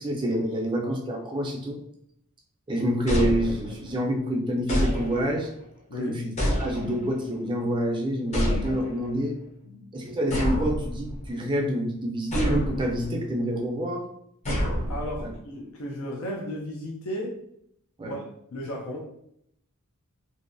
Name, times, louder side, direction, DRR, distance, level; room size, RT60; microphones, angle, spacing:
voice 1, 0.0-1.8 2.7-5.5 6.0-9.4 9.9-14.1 15.2-15.3 18.0-18.2, equal, 20° right, 0 dB, 0.4 m, -27 dB
sound 1, 3.1-4.0 4.7-5.5 6.4-7.2 8.3-9.1 10.3-11.3 12.3-13.1 14.5-15.4, equal, 35° left, 0.6 m, -28 dB
voice 2, 14.9-17.4 18.0-18.2 18.5-19.0, equal, 75° left, -2 dB, 0.5 m, -34 dB
2.6 x 2.1 x 2.5 m, 0.72 s
head